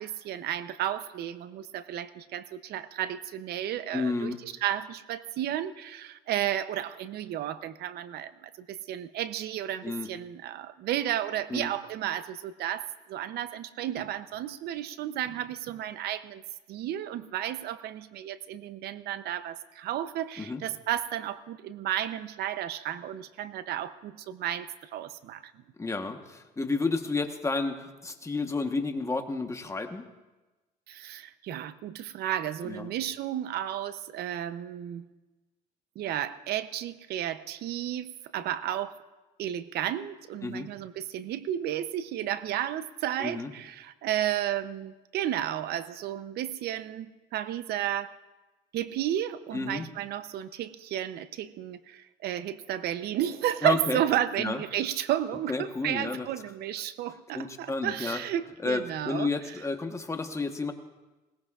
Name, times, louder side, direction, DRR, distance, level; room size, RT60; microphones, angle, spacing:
voice 1, 0.0-16.4 16.7-25.5 30.9-35.1 36.0-38.9 39.4-48.1 48.7-59.3, right 11 dB, 70° right, 13 dB, 0.7 m, -33 dB
voice 2, 3.9-4.4 9.8-10.1 11.5-11.7 20.4-20.6 25.8-30.1 32.6-32.9 40.4-40.7 43.2-43.5 49.5-49.9 53.6-54.0 54.4-54.6 55.5-56.3 57.3-58.2 58.6-60.7, left 3 dB, 15° left, 6 dB, 1.2 m, -31 dB
21.0 x 18.0 x 2.4 m, 1.2 s
cardioid pair, 110°, 17 cm